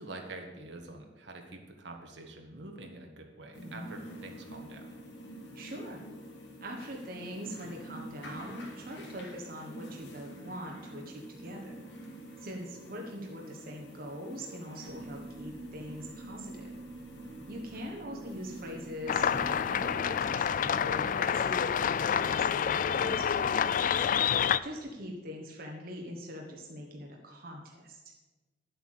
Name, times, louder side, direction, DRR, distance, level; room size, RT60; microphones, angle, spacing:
voice 1, 0.0-5.0 17.7-17.9, right 2 dB, 75° right, 3 dB, 1.6 m, -46 dB
sound 1, 3.5-19.9, right 1 dB, 75° left, 2.5 m, -47 dB
voice 2, 3.6-3.9 5.5-6.0 6.6-11.8 12.4-16.7 17.5-28.0, equal, 55° right, 0 dB, 1.3 m, -42 dB
sound 2, 14.9-22.8, right 2 dB, 35° right, 1.0 m, -48 dB
sound 3, 19.1-24.6, left 8 dB, 45° left, 0.3 m, -28 dB
10.5 x 8.0 x 6.5 m, 1.2 s
head